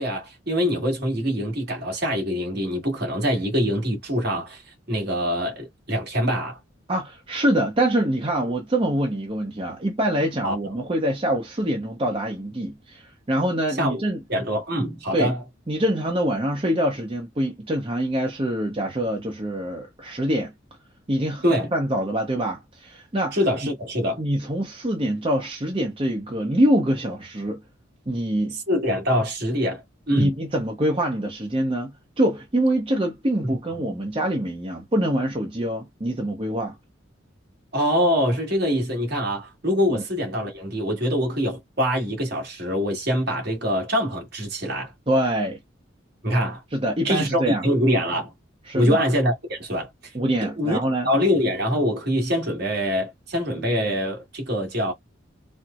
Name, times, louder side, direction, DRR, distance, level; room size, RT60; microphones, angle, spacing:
voice 1, 0.0-4.6 4.9-6.6 10.4-10.7 13.8-14.0 14.3-15.4 21.4-21.7 23.3-24.2 28.7-30.3 37.7-44.9 46.2-46.6 47.0-48.3 48.7-49.9 50.4-50.8 51.0-54.9, equal, 55° right, 1.5 m, -24 dB
voice 2, 6.9-14.2 15.1-15.3 15.7-20.5 21.1-21.4 21.7-23.4 23.6-23.7 24.2-27.6 28.1-28.6 30.1-36.8 39.9-40.0 45.1-45.6 46.7-47.6 48.7-49.1 50.1-51.1, right 1 dB, 25° right, 0.6 m, -25 dB
4.3 x 2.0 x 2.3 m
head